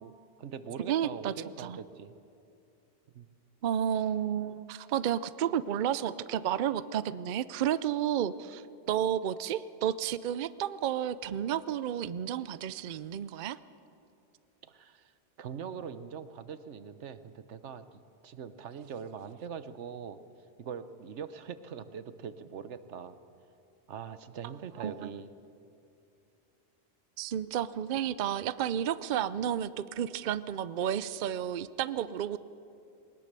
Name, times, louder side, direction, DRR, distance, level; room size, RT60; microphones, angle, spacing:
voice 1, 0.0-2.1 3.1-3.3 14.6-20.2 20.6-23.2 23.9-25.3, right 7 dB, 90° right, 12 dB, 1.2 m, -42 dB
voice 2, 0.9-1.3 1.6-1.8 3.6-13.6 24.8-25.1 27.2-32.4, right 10 dB, 55° right, 15 dB, 0.6 m, -31 dB
20.0 x 19.5 x 6.8 m, 2.7 s
omnidirectional pair, 1.2 m